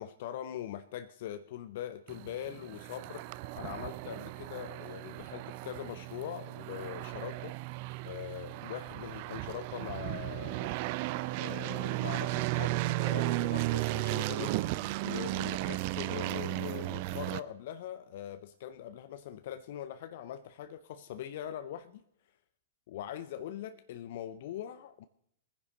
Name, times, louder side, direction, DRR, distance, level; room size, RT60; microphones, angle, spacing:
voice 1, 0.0-3.3 3.5-7.6 8.0-10.8 11.4-14.6 15.0-22.0 22.9-25.1, left 10 dB, 55° left, 11 dB, 0.5 m, -42 dB
sound 1, 2.1-17.4, right 18 dB, 45° right, 0.4 m, -35 dB
20.5 x 10.0 x 3.9 m, 0.72 s
figure-of-eight pair, 110°, 0 cm